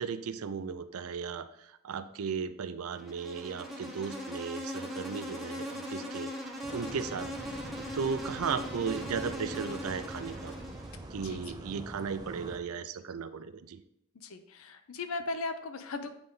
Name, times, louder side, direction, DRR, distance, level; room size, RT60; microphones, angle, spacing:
voice 1, 0.0-1.5 1.8-6.3 6.7-10.5 11.1-13.8, right 6 dB, 75° right, 12 dB, 0.4 m, -36 dB
Insect, 2.9-11.1, left 1 dB, ahead, 0.9 m, -40 dB
sound 1, 6.6-12.6, right 2 dB, 15° right, 0.4 m, -45 dB
voice 2, 11.2-11.6 14.1-16.1, left 3 dB, 70° left, 9 dB, 0.6 m, -38 dB
8.8 x 3.9 x 3.7 m, 0.80 s
head